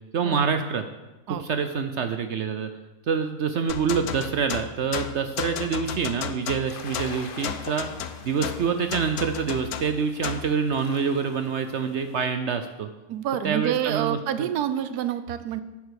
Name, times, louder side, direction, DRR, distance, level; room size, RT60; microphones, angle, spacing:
voice 1, 0.1-0.8 1.3-2.7 3.1-7.9 8.2-12.9 13.4-14.5, right 6 dB, 60° right, 8 dB, 0.8 m, -26 dB
sound 1, 3.7-10.5, left 9 dB, 75° left, 1.2 m, -34 dB
sound 2, 6.7-12.3, left 5 dB, 45° left, 0.8 m, -45 dB
voice 2, 13.1-15.6, right 10 dB, 80° right, 12 dB, 1.2 m, -27 dB
8.3 x 8.2 x 6.4 m, 1.1 s
omnidirectional pair, 1.7 m